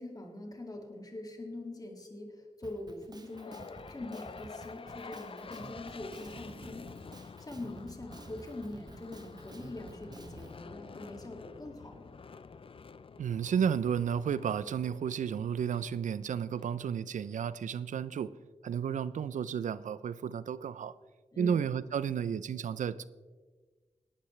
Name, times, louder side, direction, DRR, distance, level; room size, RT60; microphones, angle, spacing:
voice 1, 0.0-7.0 7.4-12.2 21.3-21.6, left 2 dB, 30° left, 2 dB, 2.2 m, -43 dB
Drum kit, 2.6-10.6, right 2 dB, 35° right, 1.1 m, -51 dB
sound 1, 3.3-17.4, left 5 dB, 45° left, 0.5 m, -50 dB
voice 2, 13.2-18.3 18.6-20.9 21.4-23.0, right 8 dB, 90° right, 16 dB, 0.5 m, -32 dB
17.5 x 11.5 x 3.2 m, 1.4 s
cardioid pair, 60°, 13 cm